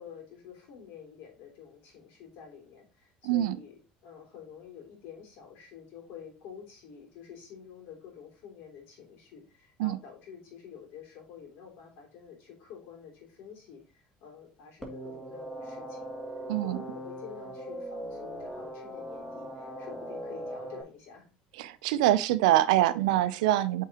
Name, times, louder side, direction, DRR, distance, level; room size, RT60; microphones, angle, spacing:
voice 1, 0.0-3.7 4.0-16.1 16.6-21.3, left 7 dB, 70° left, 2.9 m, -48 dB
voice 2, 3.2-3.6 9.8-10.0 16.5-16.8 21.6-23.8, right 14 dB, 90° right, 0.5 m, -24 dB
sound 1, 14.8-20.8, right 1 dB, 10° left, 2.4 m, -40 dB
8.2 x 4.5 x 2.9 m
supercardioid pair, 90°, 4 cm